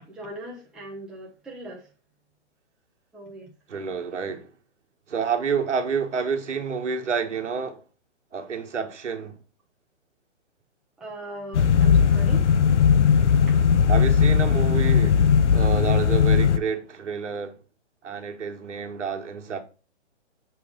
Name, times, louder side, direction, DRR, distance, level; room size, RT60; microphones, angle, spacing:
voice 1, 0.1-1.9 3.1-3.5 11.0-12.5 13.5-13.6, right 1 dB, ahead, 0.6 m, -39 dB
voice 2, 3.7-4.5 5.1-7.8 8.3-9.4 13.9-15.2 15.5-17.5 18.0-19.6, right 6 dB, 85° right, 1.5 m, -29 dB
sound 1, 11.5-16.6, left 7 dB, 75° left, 0.7 m, -18 dB
6.9 x 3.4 x 5.1 m
hypercardioid pair, 150°, 35 cm